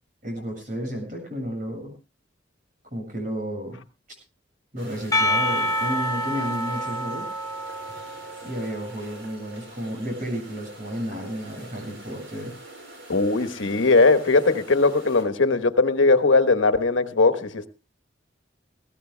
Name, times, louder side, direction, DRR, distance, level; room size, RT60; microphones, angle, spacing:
voice 1, 0.2-1.9 2.9-3.8 4.7-7.3 8.4-12.5, equal, 45° right, 3 dB, 7.6 m, -32 dB
sound 1, 4.8-15.3, right 2 dB, 85° right, 5.6 m, -45 dB
Percussion, 5.1-9.0, equal, 20° left, 4.4 m, -27 dB
voice 2, 13.1-17.7, left 3 dB, 85° left, 9 dB, 1.3 m, -19 dB
21.5 x 17.5 x 2.2 m, 0.30 s
head